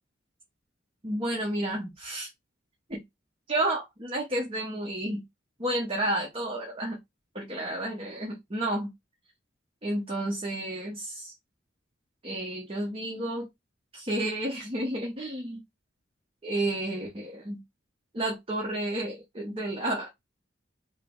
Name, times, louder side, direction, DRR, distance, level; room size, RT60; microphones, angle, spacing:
voice 1, 1.0-2.3 2.9-3.0 3.5-5.2 5.6-7.0 7.3-8.9 9.8-11.3 12.2-13.5 13.9-15.6 16.4-17.6 18.1-20.1, right 1 dB, 30° right, 0.9 m, -31 dB
5.4 x 2.0 x 3.5 m
head